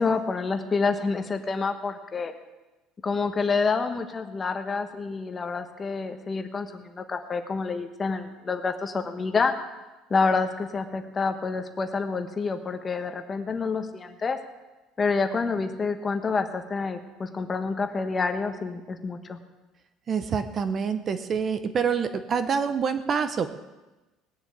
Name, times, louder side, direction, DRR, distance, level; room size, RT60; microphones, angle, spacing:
voice 1, 0.0-2.3 3.0-9.5 10.1-14.4 15.0-19.4, left 4 dB, 20° left, 7 dB, 1.3 m, -28 dB
voice 2, 20.1-23.5, right 6 dB, 30° right, 10 dB, 0.8 m, -26 dB
18.5 x 7.1 x 8.6 m, 1.1 s
cardioid pair, 145°, 0 cm